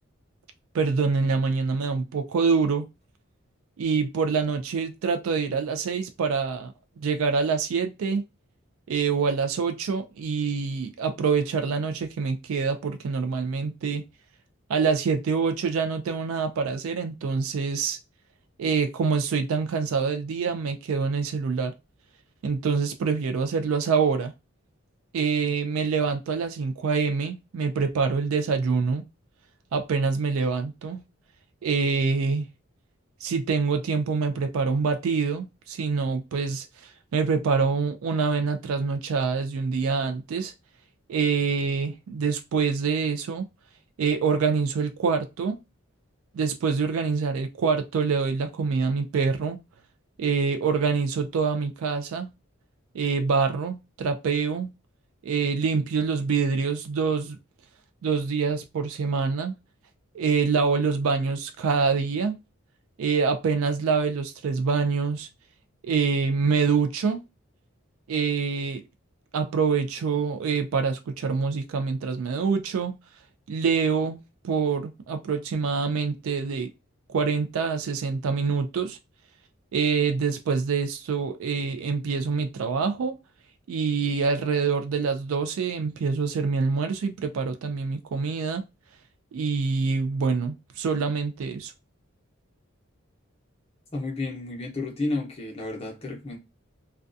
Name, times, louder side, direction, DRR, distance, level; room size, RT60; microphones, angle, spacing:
voice 1, 0.7-2.9 3.8-8.2 8.9-14.0 14.7-18.0 18.6-21.7 22.4-24.3 25.1-29.0 29.7-31.0 31.6-32.5 33.2-36.7 37.1-40.5 41.1-43.4 44.0-45.6 46.3-49.6 50.2-52.3 52.9-54.7 55.2-57.4 58.0-59.5 60.1-62.4 63.0-65.3 65.8-67.2 68.1-68.8 69.3-73.0 73.5-76.7 77.1-79.0 79.7-83.1 83.7-88.6 89.3-91.7, right 5 dB, 80° right, 0.4 m, -25 dB
voice 2, 93.9-96.4, left 2 dB, 30° left, 0.7 m, -31 dB
2.3 x 2.2 x 2.5 m
head